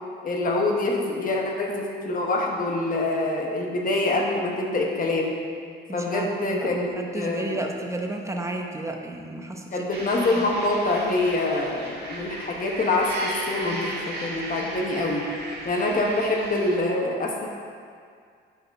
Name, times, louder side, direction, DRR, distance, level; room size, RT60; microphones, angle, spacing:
voice 1, 0.2-5.3 5.9-7.6 9.7-15.3 15.6-17.5, left 2 dB, 45° left, 0 dB, 1.1 m, -25 dB
voice 2, 5.9-9.9 10.3-10.5, right 2 dB, 15° right, 2 dB, 0.8 m, -32 dB
sound 1, 9.9-16.8, right 1 dB, 55° right, 1.5 m, -35 dB
10.5 x 4.2 x 3.5 m, 2.2 s
cardioid pair, 90°, 20 cm